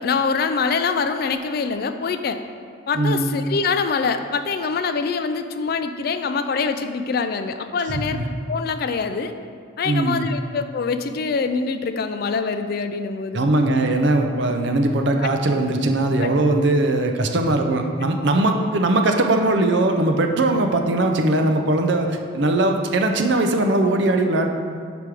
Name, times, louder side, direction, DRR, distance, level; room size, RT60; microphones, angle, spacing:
voice 1, 0.0-2.4 2.9-8.2 8.5-9.3 9.8-13.4 16.2-16.3, left 5 dB, 50° left, 9 dB, 0.3 m, -24 dB
voice 2, 3.0-3.3 7.9-8.3 9.8-10.3 13.3-24.5, right 2 dB, 60° right, 4 dB, 0.5 m, -20 dB
5.9 x 5.1 x 4.8 m, 2.2 s
head